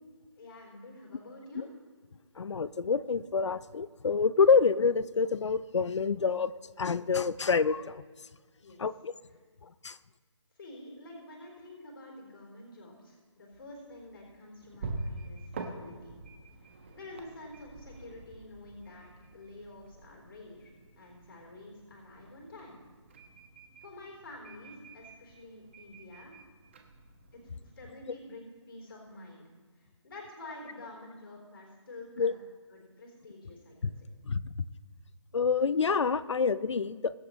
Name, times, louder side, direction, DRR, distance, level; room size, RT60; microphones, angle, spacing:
voice 1, 0.4-1.7 8.6-8.8 10.6-16.1 16.9-22.8 23.8-26.3 27.3-29.4 29.8-32.4 32.7-34.1, left 2 dB, 45° left, -1 dB, 3.7 m, -49 dB
voice 2, 2.4-6.5 6.8-8.0 8.8-9.1 9.8-10.0 32.2-32.3 34.2-34.5 35.3-37.1, left 5 dB, 70° left, 16 dB, 0.6 m, -27 dB
sound 1, 13.5-27.9, right 2 dB, 25° right, 1.1 m, -46 dB
22.5 x 7.6 x 3.1 m, 1.5 s
hypercardioid pair, 170°, 16 cm